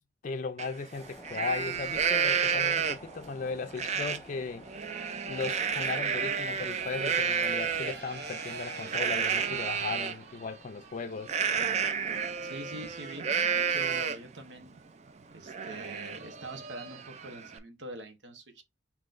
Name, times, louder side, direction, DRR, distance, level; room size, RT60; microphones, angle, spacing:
voice 1, 0.2-4.6 5.3-11.4, left 4 dB, 45° left, 0.4 m, -37 dB
Livestock farm animals working animals, 0.6-0.7 1.1-3.2 3.8-4.2 4.6-10.2 11.3-14.3 14.8-14.9 15.2-17.6, right 6 dB, 40° right, 0.4 m, -31 dB
sound 1, 0.9-15.5 15.8-16.0, equal, 5° left, 1.1 m, -55 dB
sound 2, 6.3-11.0, right 3 dB, 65° right, 0.9 m, -47 dB
voice 2, 12.4-14.8 15.3-18.6, right 2 dB, 90° right, 1.1 m, -44 dB
5.6 x 3.0 x 2.5 m
head